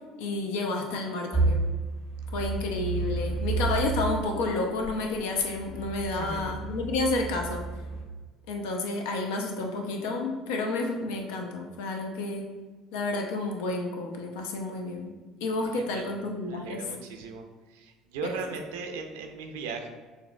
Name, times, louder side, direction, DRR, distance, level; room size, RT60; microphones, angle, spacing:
voice 1, 0.2-1.7 2.3-7.7 8.5-12.5 12.9-15.1 15.4-16.9 18.2-18.4, left 2 dB, 65° left, 2 dB, 0.6 m, -30 dB
sound 1, 1.3-4.2 4.8-8.0, right 3 dB, 35° left, 1.5 m, -30 dB
voice 2, 6.1-6.5 15.8-16.1 16.5-17.4 17.7-19.9, right 4 dB, 70° right, 5 dB, 0.5 m, -37 dB
6.5 x 2.8 x 2.3 m, 1.3 s
figure-of-eight pair, 60°, 0 cm